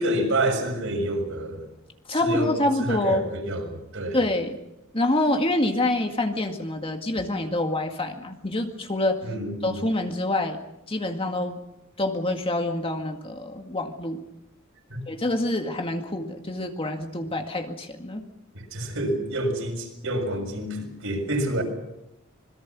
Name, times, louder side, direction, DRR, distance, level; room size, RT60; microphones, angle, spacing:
voice 1, 0.0-1.6 2.2-4.2 9.2-9.8 14.9-15.1 18.7-21.6, right 1 dB, 65° right, 3 dB, 6.7 m, -28 dB
voice 2, 2.1-3.2 4.1-4.6 4.9-9.2 9.6-10.6 10.9-11.6 12.0-14.2 15.1-18.2, left 1 dB, 25° left, 4 dB, 2.0 m, -26 dB
26.0 x 22.0 x 6.1 m, 0.85 s
head